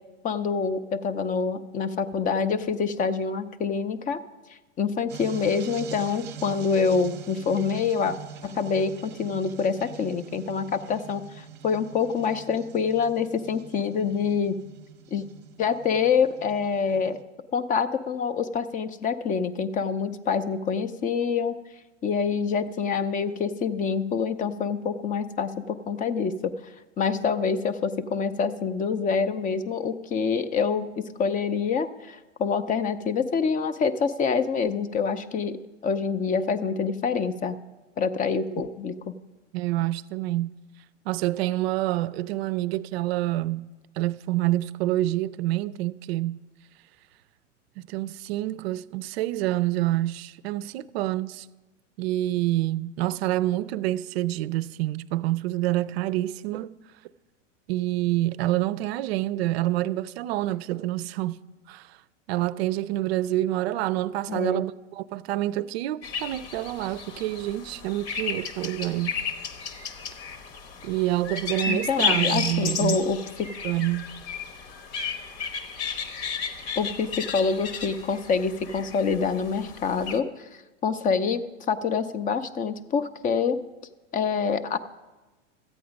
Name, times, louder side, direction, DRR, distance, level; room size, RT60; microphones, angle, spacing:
voice 1, 0.2-4.2 4.8-8.2 8.4-14.6 15.1-15.3 15.6-17.2 17.5-21.6 22.0-26.5 27.0-35.6 35.8-37.6 38.0-38.9 64.3-64.6 71.7-73.5 76.8-80.5 80.8-81.4 81.7-83.6 84.1-84.8, left 5 dB, 20° left, 0.5 m, -26 dB
sound 1, 5.1-17.2, right 9 dB, 30° right, 0.8 m, -44 dB
voice 2, 39.5-40.5 41.1-43.7 44.0-46.4 47.8-51.5 52.0-56.7 57.7-61.4 61.7-62.0 62.3-69.2 70.8-73.0 73.6-74.1, right 15 dB, 55° right, 0.5 m, -27 dB
sound 2, 66.0-80.2, left 5 dB, 55° left, 1.2 m, -33 dB
13.5 x 8.5 x 5.1 m
hypercardioid pair, 105°, 37 cm